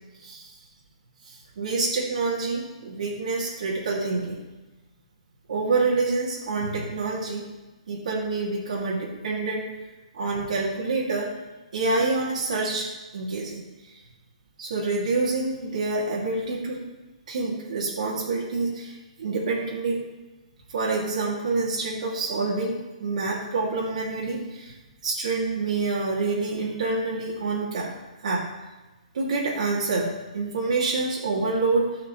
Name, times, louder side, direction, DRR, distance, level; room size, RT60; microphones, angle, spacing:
voice 1, 1.3-4.4 5.5-7.5 7.9-9.7 10.1-11.3 11.7-13.6 14.6-16.8 17.3-20.1 20.7-24.7 25.0-27.9 28.2-28.5 29.1-32.0, right 3 dB, 65° right, -4 dB, 2.7 m, -27 dB
16.0 x 5.9 x 3.3 m, 1.1 s
hypercardioid pair, 160°, 4 cm